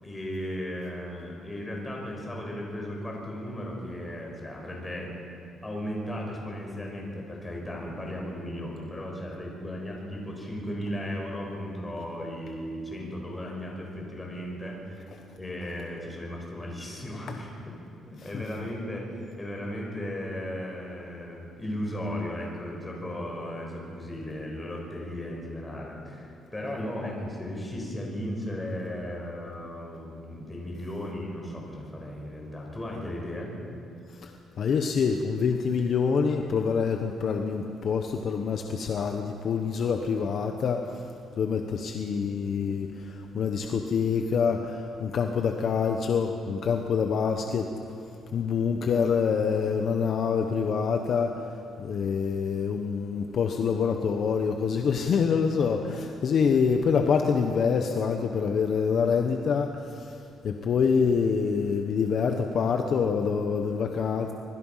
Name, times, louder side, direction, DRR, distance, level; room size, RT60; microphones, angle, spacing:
voice 1, 0.0-5.1 5.6-17.5 18.1-19.0 19.4-33.5, left 1 dB, 15° left, -1 dB, 5.4 m, -36 dB
voice 2, 34.6-47.7 48.3-51.5 51.8-64.3, left 6 dB, 50° left, 4 dB, 1.2 m, -26 dB
25.5 x 21.5 x 5.8 m, 2.5 s
cardioid pair, 145°, 0 cm